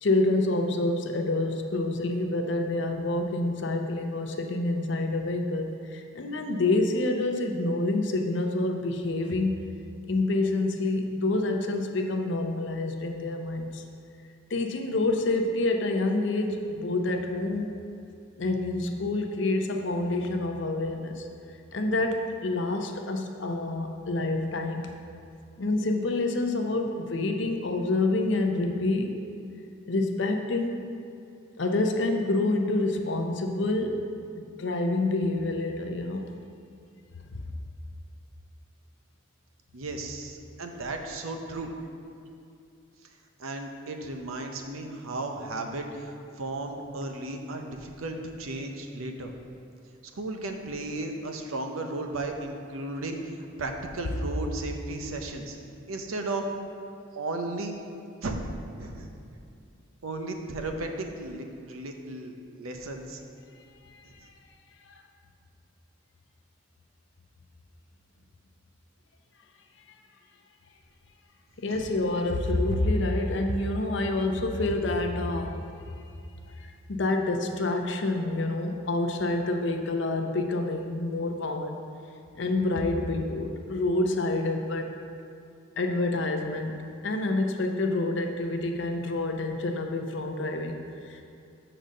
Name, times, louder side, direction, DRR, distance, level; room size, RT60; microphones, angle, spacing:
voice 1, 0.0-9.6 10.1-13.8 14.5-17.8 18.4-21.3 21.7-24.9 25.6-29.1 29.9-30.8 31.6-34.0 34.4-36.3 63.9-64.0 64.9-65.0 71.6-75.6 76.6-81.8 82.4-84.9 85.8-91.3, left 2 dB, 60° left, 4 dB, 0.6 m, -27 dB
voice 2, 39.7-41.7 43.4-49.3 50.1-53.3 53.6-55.6 55.9-56.5 57.1-57.7 58.2-58.4 58.8-59.1 60.0-63.2 71.7-71.8, right 2 dB, 90° right, 4 dB, 0.7 m, -35 dB
6.6 x 4.0 x 6.4 m, 2.5 s
head